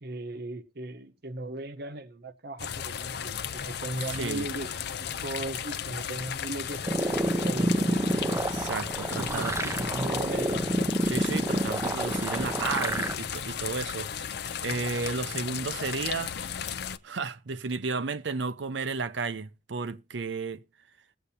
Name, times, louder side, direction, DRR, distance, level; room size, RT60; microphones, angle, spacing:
voice 1, 0.0-8.4 9.2-10.7, right 1 dB, 60° right, 0.9 m, -38 dB
sound 1, 2.6-17.0, left 8 dB, 65° left, 0.5 m, -35 dB
voice 2, 4.1-4.5 8.3-9.6 11.1-14.3 14.6-16.4 17.0-20.6, right 4 dB, 85° right, 0.7 m, -33 dB
sound 2, 6.8-13.1, right 1 dB, 15° right, 0.6 m, -28 dB
21.0 x 8.0 x 2.8 m
head